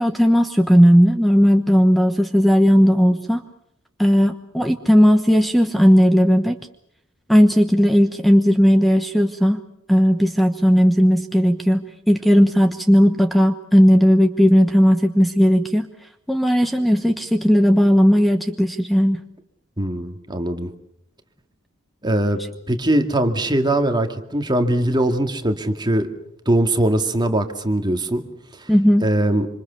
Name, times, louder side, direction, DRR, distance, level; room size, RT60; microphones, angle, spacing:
voice 1, 0.0-3.4 4.0-6.5 7.3-9.6 9.9-15.9 16.3-19.2 28.7-29.1, equal, ahead, 7 dB, 1.1 m, -16 dB
voice 2, 19.8-20.7 22.0-22.4 22.7-26.1 26.5-28.2 28.6-28.7 29.0-29.5, right 1 dB, 20° right, 5 dB, 2.1 m, -21 dB
26.5 x 26.5 x 7.0 m, 0.75 s
head